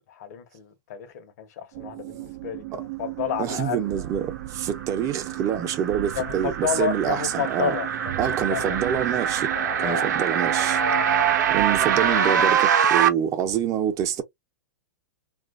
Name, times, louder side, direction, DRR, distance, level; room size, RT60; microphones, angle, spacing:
voice 1, 0.1-3.9 6.1-8.2 8.5-8.8 9.5-10.1 10.8-11.5, left 9 dB, 60° left, 1.0 m, -31 dB
sound 1, 1.7-12.5, right 17 dB, 50° right, 0.3 m, -36 dB
voice 2, 3.4-7.8 8.2-9.5 9.8-10.8 11.5-14.2, right 9 dB, 30° right, 0.8 m, -26 dB
sound 2, 4.7-13.1, right 8 dB, 70° right, 0.7 m, -24 dB
2.9 x 2.5 x 2.5 m
hypercardioid pair, 130°, 10 cm